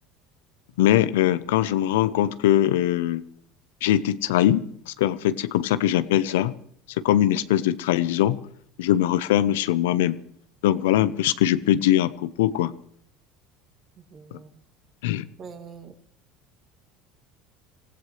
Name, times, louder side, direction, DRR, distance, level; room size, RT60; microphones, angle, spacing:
voice 1, 0.8-3.2 3.8-6.5 7.0-8.4 8.8-10.2 10.6-12.7 14.3-14.4 15.0-15.3, left 12 dB, 85° left, 14 dB, 0.8 m, -22 dB
voice 2, 14.0-14.6 15.4-16.0, right 6 dB, 45° right, 5 dB, 2.6 m, -44 dB
25.0 x 16.0 x 3.3 m, 0.65 s
supercardioid pair, 95°, 0 cm